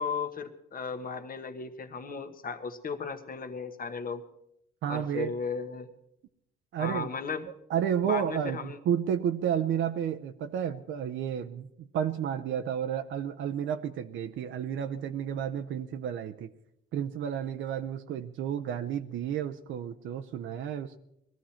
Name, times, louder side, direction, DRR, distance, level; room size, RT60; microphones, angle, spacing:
voice 1, 0.0-4.3 4.9-5.9 6.8-7.5 8.0-8.8, left 5 dB, 45° left, 9 dB, 1.3 m, -35 dB
voice 2, 4.8-5.3 6.7-7.1 7.7-16.5 16.9-21.0, right 9 dB, 75° right, 6 dB, 0.7 m, -31 dB
20.0 x 14.0 x 4.3 m, 0.80 s
cardioid pair, 90°, 20 cm